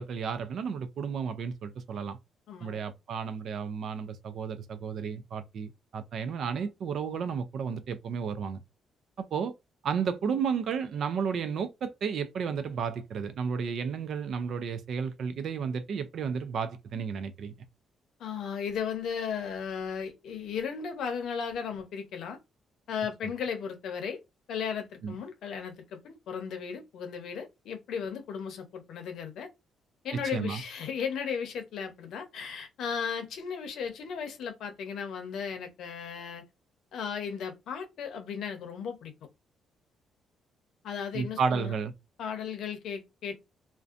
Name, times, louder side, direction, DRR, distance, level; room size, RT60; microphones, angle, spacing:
voice 1, 0.0-2.2 2.6-8.6 9.2-9.5 9.8-17.5 23.2-23.3 25.0-25.1 30.3-30.6 41.1-41.9, right 6 dB, 65° right, 0.4 m, -32 dB
voice 2, 2.5-2.8 18.2-22.4 22.9-24.2 24.5-29.5 30.0-36.4 36.9-39.1 40.8-41.7 42.2-43.3, left 7 dB, 75° left, 0.7 m, -35 dB
2.6 x 2.2 x 2.4 m
cardioid pair, 90°, 0 cm